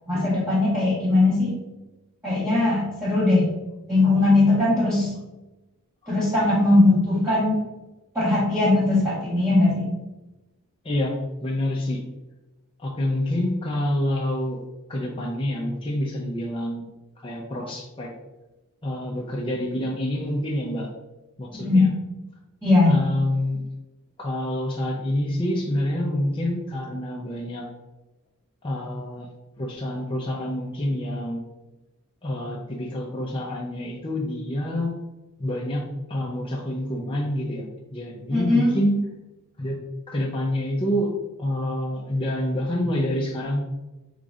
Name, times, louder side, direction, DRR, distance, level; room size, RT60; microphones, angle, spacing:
voice 1, 0.1-1.5 2.2-3.4 3.9-5.1 6.1-7.6 8.1-9.9 21.5-21.8 22.6-22.9 38.3-38.7, left 2 dB, 15° right, -10 dB, 1.5 m, -19 dB
voice 2, 10.8-12.0 12.8-14.6 14.9-16.8 17.2-18.1 18.8-20.9 21.4-21.9 22.9-23.6 24.2-27.6 28.6-29.3 29.6-31.4 32.2-34.9 35.4-35.8 36.1-39.0 39.6-39.8 40.1-41.1 41.4-43.6, left 1 dB, 25° left, -2 dB, 0.6 m, -27 dB
5.1 x 3.8 x 2.5 m, 1.0 s
head